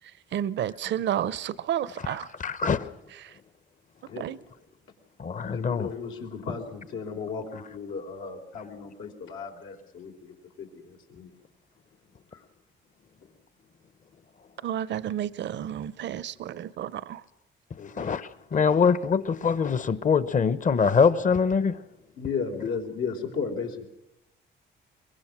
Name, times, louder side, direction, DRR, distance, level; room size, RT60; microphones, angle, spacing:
voice 1, 0.3-2.3 3.2-3.3 4.2-4.4 14.6-17.2, right 10 dB, 65° right, 0.7 m, -31 dB
voice 2, 2.1-2.9 5.2-5.9 18.0-21.8, left 5 dB, 40° left, 1.0 m, -24 dB
voice 3, 5.4-11.3 12.3-12.4 17.8-18.2 18.5-18.6 22.2-23.9, left 5 dB, 85° left, 3.7 m, -35 dB
23.5 x 21.5 x 6.1 m
cardioid pair, 90°, 20 cm